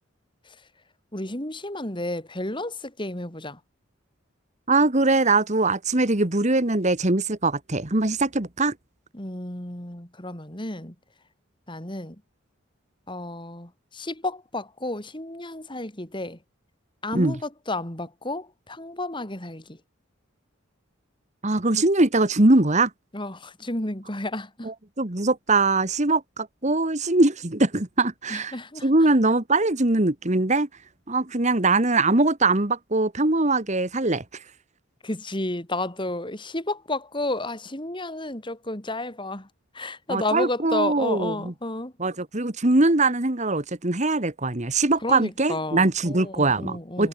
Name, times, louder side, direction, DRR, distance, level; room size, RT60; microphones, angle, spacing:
voice 1, 1.1-3.6 9.1-10.9 11.7-12.2 13.1-16.4 17.0-19.6 23.1-24.7 28.3-28.9 35.0-39.5 39.8-41.9 45.0-47.1, left 2 dB, 25° left, 3.5 m, -32 dB
voice 2, 4.7-8.7 17.1-17.4 21.4-22.9 24.6-28.6 28.8-30.7 31.1-34.2 40.1-41.5 42.0-47.1, right 2 dB, 35° right, 1.6 m, -22 dB
head